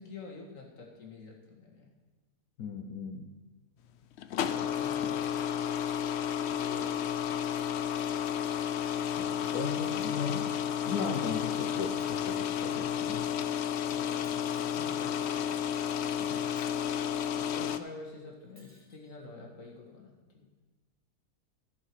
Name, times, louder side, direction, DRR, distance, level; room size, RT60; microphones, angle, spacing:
voice 1, 0.0-1.9 4.5-5.6 6.4-7.3 9.9-10.3 13.8-15.7 17.4-20.5, left 4 dB, 55° left, 1 dB, 2.1 m, -48 dB
voice 2, 2.6-3.3 9.1-10.5 10.9-13.6 16.2-16.4, left 5 dB, 70° left, 3 dB, 1.3 m, -37 dB
sound 1, 4.1-17.8, left 9 dB, 90° left, 0.5 m, -32 dB
Shatter, 12.0-13.0 14.2-15.0 16.5-17.2 18.5-19.1, right 1 dB, 5° right, 1.5 m, -61 dB
14.5 x 6.9 x 4.7 m, 1.2 s
omnidirectional pair, 1.7 m